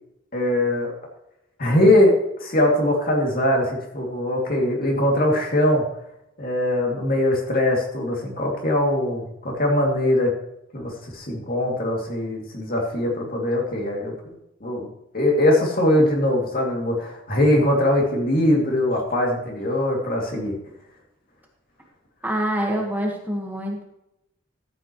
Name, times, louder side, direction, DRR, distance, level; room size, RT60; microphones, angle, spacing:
voice 1, 0.3-0.9 1.6-2.1 2.4-5.8 6.4-10.3 10.7-14.3 14.6-14.9 15.1-20.5, left 1 dB, 45° left, 0 dB, 2.6 m, -21 dB
voice 2, 22.2-23.8, equal, 10° right, -1 dB, 1.5 m, -25 dB
13.5 x 8.2 x 3.1 m, 0.87 s
head